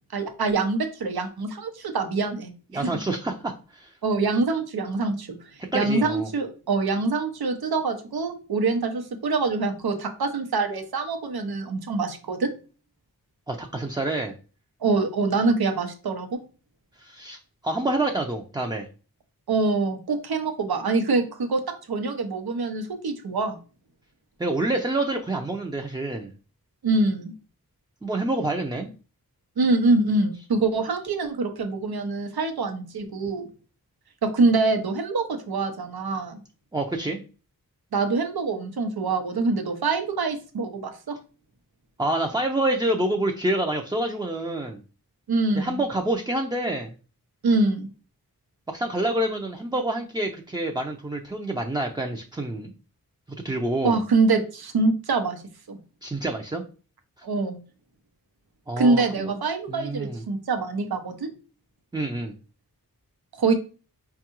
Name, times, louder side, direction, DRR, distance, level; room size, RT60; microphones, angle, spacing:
voice 1, 0.1-2.9 4.0-5.4 5.7-12.5 14.8-16.4 19.5-21.6 21.9-23.6 26.8-27.3 29.6-33.5 34.2-36.4 37.9-41.1 45.3-45.8 47.4-47.9 53.8-55.4 55.7-55.8 57.2-57.6 58.8-61.3 63.4-63.5, right 3 dB, 80° right, 6 dB, 0.8 m, -25 dB
voice 2, 2.7-3.9 5.7-6.3 13.5-14.3 17.0-17.4 17.6-18.9 24.4-26.3 28.0-28.9 36.7-37.2 42.0-44.8 45.6-46.9 48.7-52.7 53.4-54.0 56.0-56.6 58.7-59.3 59.7-60.2 61.9-62.3, right 1 dB, 10° right, 3 dB, 0.5 m, -27 dB
4.4 x 2.4 x 2.9 m, 0.36 s
cardioid pair, 45°, 37 cm